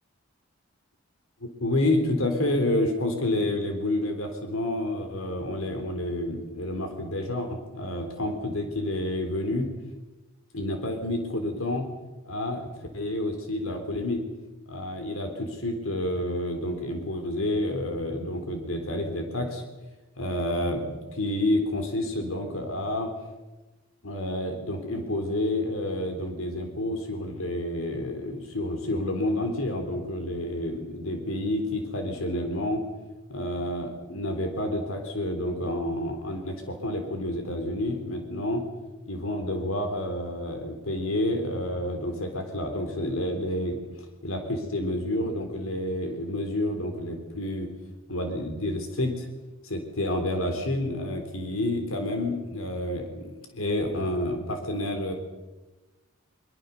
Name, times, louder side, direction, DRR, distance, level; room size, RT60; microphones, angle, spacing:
voice 1, 1.6-9.7 10.5-11.9 12.3-12.7 12.9-14.2 14.7-19.6 20.2-23.1 24.0-32.8 33.3-38.6 39.1-43.8 44.2-47.7 48.1-49.3 49.6-55.1, left 1 dB, 85° left, 5 dB, 3.6 m, -29 dB
24.0 x 23.5 x 7.1 m, 1.1 s
head